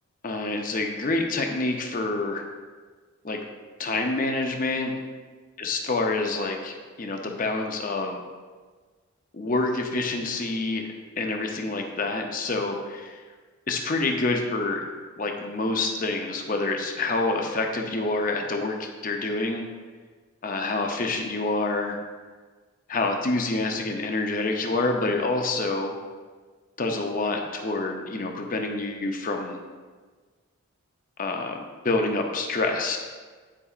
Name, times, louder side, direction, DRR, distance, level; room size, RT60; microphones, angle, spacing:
voice 1, 0.2-2.4 3.2-3.4 3.8-5.0 5.6-8.2 9.3-13.2 13.7-14.9 15.2-19.6 20.4-22.0 22.9-26.0 26.8-29.6 31.2-33.0, left 2 dB, 40° left, 3 dB, 0.6 m, -27 dB
9.9 x 4.7 x 2.4 m, 1.4 s
head